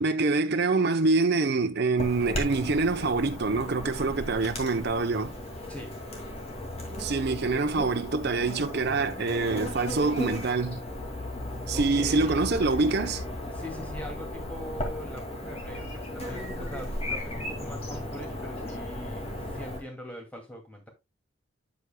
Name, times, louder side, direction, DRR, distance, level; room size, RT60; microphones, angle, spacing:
voice 1, 0.0-5.3 7.0-10.8 11.7-13.2, right 3 dB, 50° right, 0.7 m, -25 dB
Chirp tweet / Buzz, 2.0-19.8, left 1 dB, 30° left, 2.1 m, -36 dB
voice 2, 11.4-12.4 13.5-20.9, equal, 5° left, 2.3 m, -42 dB
8.2 x 7.9 x 2.2 m
head